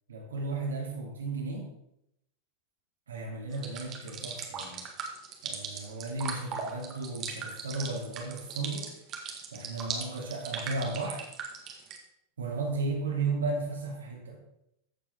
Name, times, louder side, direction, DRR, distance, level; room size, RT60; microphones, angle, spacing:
voice 1, 0.1-1.7 3.1-4.8 5.4-8.9 9.5-11.3 12.4-14.4, right 3 dB, 70° right, -1 dB, 2.9 m, -34 dB
sound 1, 3.5-12.0, right 5 dB, 35° right, 1.7 m, -39 dB
14.5 x 7.6 x 3.7 m, 0.80 s
figure-of-eight pair, 90°, 0 cm